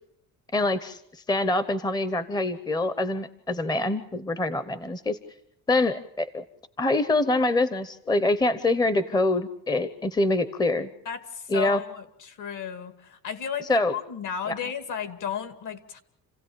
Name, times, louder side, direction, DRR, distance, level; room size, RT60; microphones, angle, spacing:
voice 1, 0.5-5.2 5.7-6.4 6.8-10.9 11.5-11.8 13.7-13.9 14.5-14.6, left 2 dB, 10° left, 13 dB, 0.9 m, -25 dB
voice 2, 11.0-16.0, left 8 dB, 55° left, 9 dB, 2.5 m, -34 dB
29.0 x 16.5 x 8.7 m, 0.74 s
cardioid pair, 150°, 36 cm